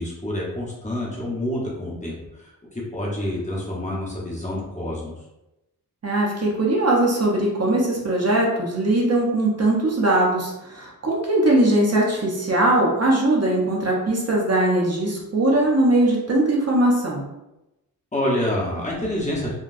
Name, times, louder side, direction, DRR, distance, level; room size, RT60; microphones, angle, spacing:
voice 1, 0.0-5.1 18.1-19.5, left 1 dB, 20° left, -5 dB, 0.8 m, -27 dB
voice 2, 6.0-17.2, right 1 dB, 45° right, -3 dB, 0.7 m, -20 dB
3.8 x 2.2 x 2.5 m, 0.94 s
wide cardioid pair, 110°, 36 cm